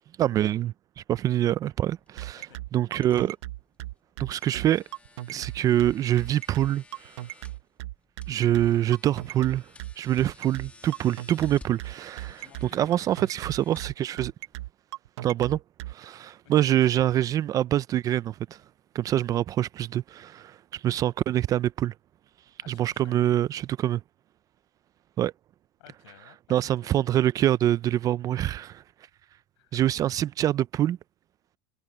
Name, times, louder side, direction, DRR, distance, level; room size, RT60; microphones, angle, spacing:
voice 1, 0.2-2.4 2.7-3.4 4.2-4.8 5.3-7.1 8.3-9.6 10.0-14.3 15.2-15.6 15.9-18.3 18.9-21.9 22.7-24.0 25.2-25.3 26.5-28.8 29.7-31.0, right 12 dB, 25° right, 0.3 m, -25 dB
sound 1, 1.3-14.5, left 3 dB, 10° left, 1.8 m, -56 dB
sound 2, 2.2-15.9, right 16 dB, 85° right, 0.9 m, -37 dB
voice 2, 2.3-3.0 12.1-13.0 16.4-16.7 22.6-23.3 25.8-26.9 29.6-29.8, left 17 dB, 85° left, 5.7 m, -55 dB
supercardioid pair, 155°, 14 cm